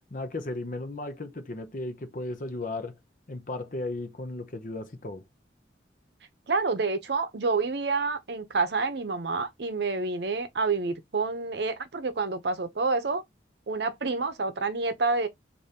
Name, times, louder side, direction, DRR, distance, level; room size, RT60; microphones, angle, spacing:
voice 1, 0.1-3.0 3.3-5.2, left 2 dB, 45° left, 0.6 m, -35 dB
voice 2, 6.5-13.2 13.7-15.3, right 4 dB, 70° right, 0.7 m, -28 dB
5.0 x 2.6 x 2.7 m
head